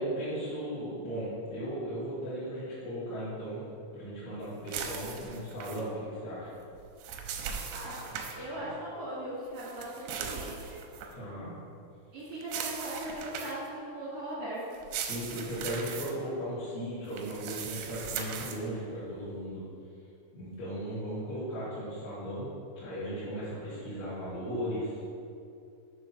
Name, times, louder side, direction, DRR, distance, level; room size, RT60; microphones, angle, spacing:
voice 1, 0.0-3.6 3.9-6.5 8.5-8.7 11.1-11.5 15.0-19.6 20.3-22.5 22.7-24.9, equal, 60° left, -14 dB, 3.7 m, -36 dB
sound 1, 4.7-5.8 6.8-8.4 9.6-11.1 12.4-13.7 14.7-16.1 17.1-18.6, right 7 dB, 85° right, 2.5 m, -39 dB
voice 2, 7.7-8.0 8.3-10.8 12.1-14.8, right 1 dB, 60° right, -9 dB, 1.5 m, -39 dB
9.1 x 3.8 x 5.9 m, 2.5 s
omnidirectional pair, 5.5 m